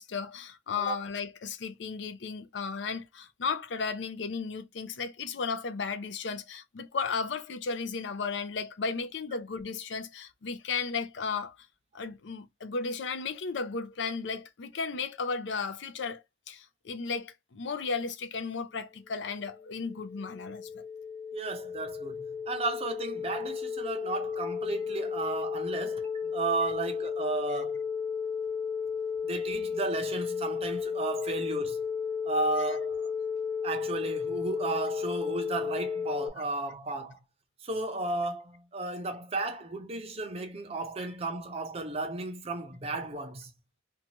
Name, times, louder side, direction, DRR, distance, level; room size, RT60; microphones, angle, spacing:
voice 1, 0.0-11.6 11.9-20.8 32.6-32.7, left 5 dB, 70° left, 0.5 m, -34 dB
sound 1, 19.3-36.3, left 6 dB, 15° left, 0.3 m, -34 dB
voice 2, 21.3-27.8 29.2-31.8 32.2-33.1 33.6-37.2 37.6-43.5, right 3 dB, 35° right, 0.6 m, -34 dB
2.7 x 2.3 x 2.8 m
head